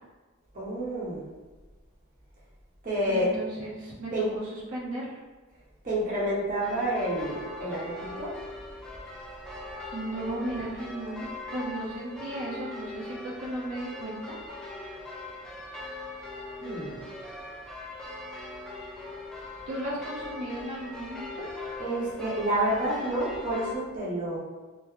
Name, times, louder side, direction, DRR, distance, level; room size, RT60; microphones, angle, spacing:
voice 1, 0.5-1.2 2.8-3.3 4.1-4.3 5.8-8.3 16.6-17.1 21.8-24.4, right 1 dB, 40° right, -7 dB, 0.9 m, -29 dB
voice 2, 3.1-5.1 9.9-14.4 19.7-21.5, right 1 dB, 75° right, -6 dB, 0.9 m, -35 dB
sound 1, 6.6-23.8, left 2 dB, 5° left, 0.4 m, -41 dB
3.7 x 2.0 x 3.1 m, 1.3 s
head